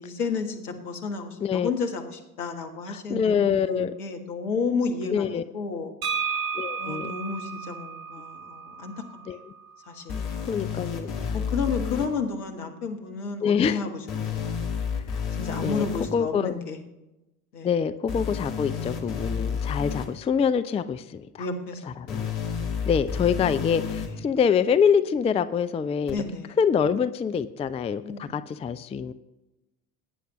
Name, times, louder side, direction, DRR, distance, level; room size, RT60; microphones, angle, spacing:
voice 1, 0.0-5.9 6.8-9.2 9.9-10.1 11.3-14.5 15.4-16.8 17.5-17.7 21.4-21.9 23.5-24.2 26.1-26.6 28.0-28.3, left 4 dB, 75° left, 4 dB, 1.6 m, -32 dB
voice 2, 1.4-1.7 2.9-3.9 5.1-5.4 6.6-7.1 9.3-9.4 10.5-11.1 13.4-13.8 15.6-16.5 17.6-21.5 22.1-22.3 22.9-26.2 26.6-29.1, left 7 dB, 15° left, 12 dB, 0.4 m, -25 dB
sound 1, 6.0-9.8, right 6 dB, 50° right, 1.3 m, -33 dB
sound 2, 10.1-12.1 14.1-16.1 18.1-20.1 22.1-24.1 26.1-26.2, left 6 dB, 55° left, 2.1 m, -30 dB
18.5 x 9.3 x 3.0 m, 0.99 s
figure-of-eight pair, 60°, 45 cm